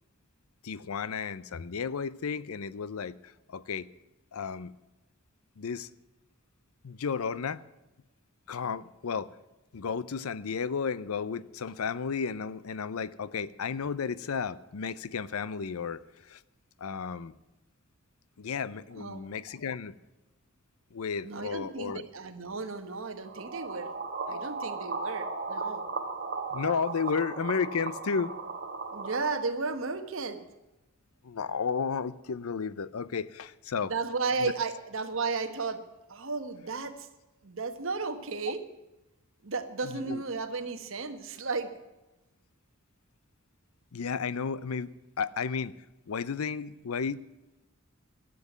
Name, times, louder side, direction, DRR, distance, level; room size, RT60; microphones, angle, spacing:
voice 1, 0.6-3.9 4.3-4.7 5.6-5.9 6.8-7.6 8.5-9.4 9.7-16.4 16.8-17.3 18.4-19.9 20.9-22.0 26.5-28.4 31.2-33.9 34.4-34.5 39.9-40.2 43.9-45.8 46.1-47.2, left 6 dB, 80° left, 0.6 m, -33 dB
voice 2, 21.2-23.9 24.3-25.8 28.9-30.4 33.8-35.8 36.1-37.1 37.4-38.6 39.4-41.7, right 4 dB, 60° right, 1.2 m, -34 dB
sound 1, 23.2-29.3, right 4 dB, 45° right, 1.5 m, -36 dB
13.5 x 7.7 x 9.3 m
head